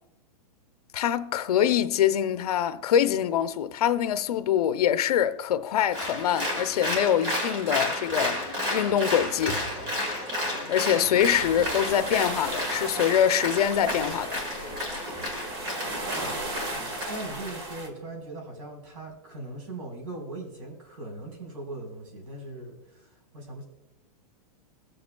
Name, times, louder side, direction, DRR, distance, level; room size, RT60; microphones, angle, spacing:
voice 1, 0.9-8.4 8.7-9.6 10.7-14.4, left 9 dB, 75° left, 0.7 m, -24 dB
Applause, 5.9-17.5, left 1 dB, 20° right, 1.8 m, -32 dB
sound 1, 11.2-17.9, right 2 dB, 40° right, 1.5 m, -36 dB
voice 2, 17.1-23.6, right 2 dB, 60° right, 4.3 m, -39 dB
21.5 x 7.8 x 2.3 m
supercardioid pair, 175°, 20 cm